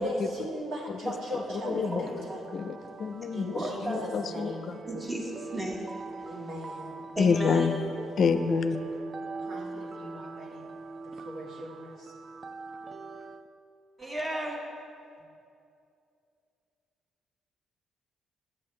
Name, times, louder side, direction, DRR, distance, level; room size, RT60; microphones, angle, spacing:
voice 1, 0.0-1.9 2.3-2.4 3.3-4.6 6.3-7.2 9.4-10.7 11.0-12.1, equal, 75° right, -3 dB, 1.8 m, -39 dB
voice 2, 0.9-2.3 2.5-4.8 7.2-7.8 8.2-8.8, left 5 dB, 55° left, 9 dB, 0.4 m, -29 dB
sound 1, 1.1-13.5, right 3 dB, 40° right, 0.4 m, -42 dB
voice 3, 1.6-2.0 3.5-4.1 4.9-6.5 7.1-7.7 14.0-14.7, right 1 dB, 15° right, -1 dB, 1.5 m, -34 dB
10.5 x 8.6 x 3.3 m, 2.6 s
cardioid pair, 90°, 0 cm